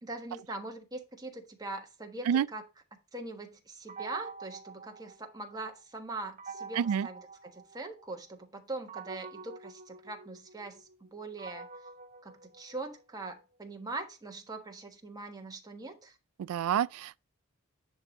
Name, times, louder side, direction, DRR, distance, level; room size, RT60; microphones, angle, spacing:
voice 1, 0.0-2.6 3.1-11.7 12.2-16.2, right 2 dB, 20° right, 1.3 m, -42 dB
sound 1, 3.9-5.7 6.4-8.2 8.9-13.2, right 4 dB, 35° right, 0.7 m, -47 dB
voice 2, 6.8-7.1 16.4-17.2, right 8 dB, 80° right, 0.3 m, -28 dB
10.0 x 3.6 x 4.0 m
head